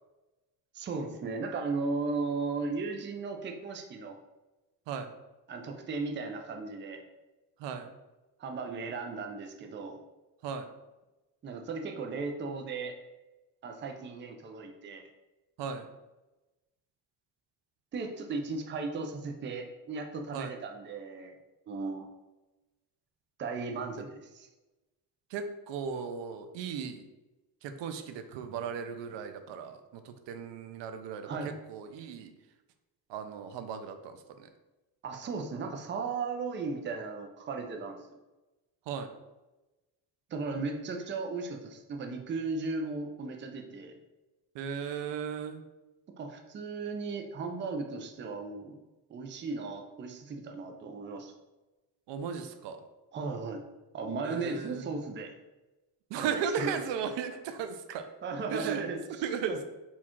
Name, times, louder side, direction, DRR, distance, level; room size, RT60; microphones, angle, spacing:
voice 1, 0.7-4.2 5.5-7.0 8.4-10.0 11.4-12.9 13.6-15.0 17.9-21.3 21.7-22.1 23.4-24.5 31.3-31.5 35.0-38.0 40.3-44.0 46.2-48.8 49.1-51.3 53.1-53.6 53.9-55.3 56.2-56.8 58.2-59.6, right 4 dB, 30° right, 4 dB, 0.4 m, -36 dB
voice 2, 7.6-7.9 10.4-10.7 15.6-15.9 20.3-20.5 25.3-27.0 27.6-32.3 33.1-34.5 38.9-39.1 44.5-45.6 52.1-52.8 54.2-54.9 56.1-58.1 58.5-58.8 59.2-59.6, right 7 dB, 90° right, 8 dB, 0.6 m, -36 dB
4.3 x 2.4 x 4.4 m, 1.1 s
cardioid pair, 145°, 42 cm